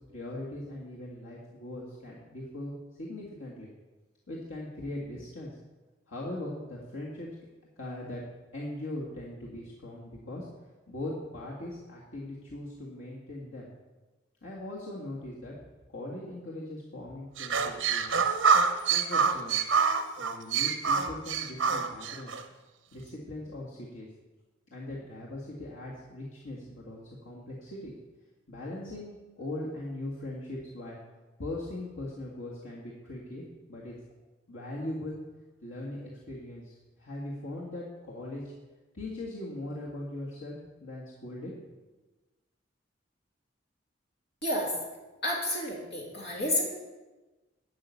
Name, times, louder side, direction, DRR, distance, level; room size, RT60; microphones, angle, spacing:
voice 1, 0.1-3.7 4.3-5.6 6.1-7.3 7.8-8.2 8.5-10.5 10.9-13.7 14.4-15.5 15.9-18.2 18.9-19.7 20.2-22.3 22.9-24.1 24.7-27.9 28.5-31.0 31.4-33.4 33.7-33.9 34.5-35.2 35.6-38.5 38.9-41.5, left 1 dB, 85° left, -5 dB, 1.9 m, -40 dB
sound 1, 17.4-22.4, right 6 dB, 65° right, 1.0 m, -26 dB
voice 2, 44.4-44.7 45.2-46.6, left 1 dB, 60° left, -2 dB, 3.0 m, -30 dB
11.5 x 5.9 x 8.3 m, 1.2 s
head